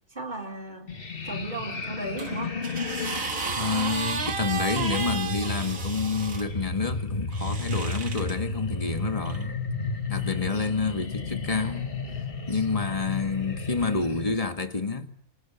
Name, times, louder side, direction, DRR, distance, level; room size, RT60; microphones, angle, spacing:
voice 1, 0.1-0.9 1.2-2.6, right 2 dB, 35° right, 4.2 m, -35 dB
sound 1, 0.9-14.4, left 3 dB, 45° left, 2.0 m, -33 dB
sound 2, 2.2-6.5 7.3-8.3 9.3-9.4, right 5 dB, 80° right, 2.3 m, -33 dB
voice 2, 3.6-9.6 10.1-11.9 12.5-15.1, left 4 dB, 25° left, 1.9 m, -28 dB
27.0 x 26.0 x 7.2 m
omnidirectional pair, 1.4 m